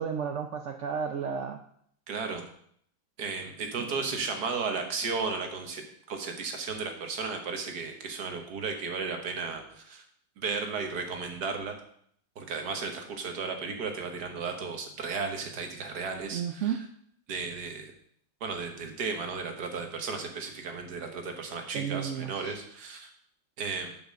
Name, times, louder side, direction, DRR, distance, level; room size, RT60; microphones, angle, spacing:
voice 1, 0.0-1.6 3.8-4.0 16.3-16.9 21.7-22.6, right 7 dB, 80° right, 6 dB, 0.6 m, -33 dB
voice 2, 2.1-2.4 3.2-5.8 6.1-10.0 10.4-11.8 12.4-16.8 17.3-17.9 18.4-23.1 23.6-24.0, right 4 dB, 60° right, 4 dB, 1.8 m, -34 dB
7.3 x 5.9 x 6.4 m, 0.65 s
omnidirectional pair, 2.1 m